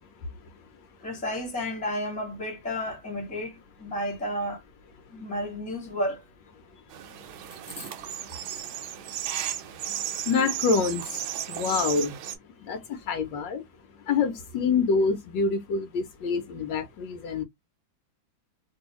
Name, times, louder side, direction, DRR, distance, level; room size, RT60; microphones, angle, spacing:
voice 1, 1.0-4.6 5.1-6.2 7.8-7.9, equal, 5° left, 1.2 m, -32 dB
sound 1, 6.9-12.4, right 10 dB, 85° right, 1.4 m, -34 dB
voice 2, 7.5-8.3 8.7-8.8 9.6-12.2 12.4-13.6 14.0-17.4, left 5 dB, 75° left, 1.3 m, -28 dB
3.0 x 2.7 x 2.9 m
omnidirectional pair, 2.1 m